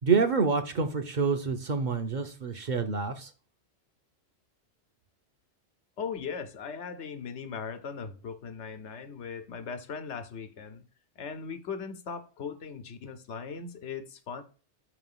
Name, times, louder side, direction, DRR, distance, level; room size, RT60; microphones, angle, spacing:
voice 1, 0.0-3.3, right 5 dB, 50° right, 0.7 m, -27 dB
voice 2, 6.0-10.8 11.2-14.4, left 6 dB, 85° left, 1.1 m, -39 dB
5.7 x 3.0 x 5.4 m
omnidirectional pair, 1.1 m